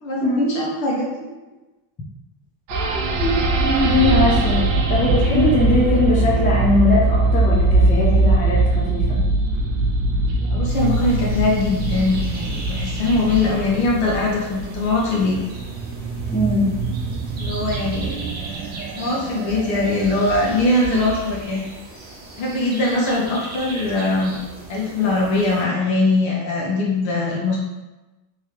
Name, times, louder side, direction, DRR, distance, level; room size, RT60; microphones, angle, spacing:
voice 1, 0.0-1.1 10.4-15.4 17.4-18.3 19.0-21.6 22.4-24.4 24.7-27.6, left 2 dB, 65° left, -4 dB, 1.5 m, -21 dB
voice 2, 2.7-4.6 4.9-9.2 16.3-16.7, left 2 dB, 15° left, -5 dB, 0.7 m, -21 dB
sound 1, 2.7-21.4, right 2 dB, 75° right, 0.8 m, -22 dB
sound 2, 10.7-25.6, right 2 dB, 20° right, 0.7 m, -39 dB
3.5 x 3.1 x 3.0 m, 1.1 s
cardioid pair, 135°, 50 cm